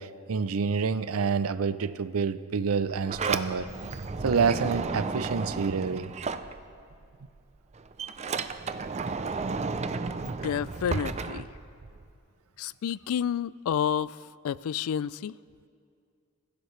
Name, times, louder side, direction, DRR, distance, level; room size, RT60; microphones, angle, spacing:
voice 1, 0.0-3.7 4.2-6.1, right 5 dB, 80° right, 0.5 m, -27 dB
Sliding door, 2.7-7.1 7.4-12.1, right 4 dB, 30° right, 0.5 m, -33 dB
voice 2, 10.2-11.5 12.6-14.1 14.4-15.3, left 8 dB, 75° left, 0.3 m, -30 dB
27.0 x 15.5 x 3.2 m
head